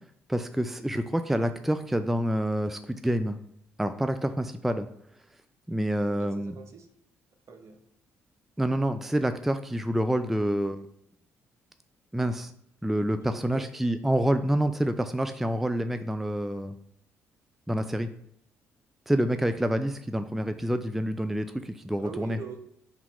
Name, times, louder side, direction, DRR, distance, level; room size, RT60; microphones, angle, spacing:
voice 1, 0.3-3.4 3.8-4.9 5.7-6.5 8.6-10.9 12.1-12.5 12.8-16.8 17.7-18.1 19.1-22.4, right 1 dB, 5° right, 9 dB, 0.3 m, -27 dB
voice 2, 6.2-6.9 7.5-7.8 13.2-13.7 22.0-22.6, right 6 dB, 50° right, 5 dB, 0.7 m, -43 dB
3.9 x 2.8 x 4.2 m, 0.74 s
hypercardioid pair, 50°, 6 cm